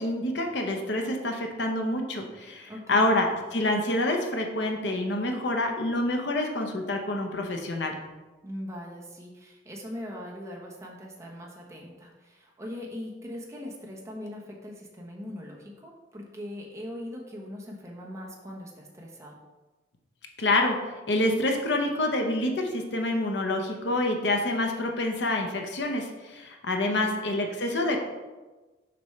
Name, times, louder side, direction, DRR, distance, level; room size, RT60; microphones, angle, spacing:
voice 1, 0.0-8.0 20.4-20.8 21.1-28.0, left 1 dB, 65° left, 3 dB, 0.9 m, -27 dB
voice 2, 2.7-3.2 8.4-19.3 26.9-27.5, left 1 dB, 15° right, -2 dB, 1.1 m, -41 dB
6.8 x 5.1 x 3.3 m, 1.2 s
head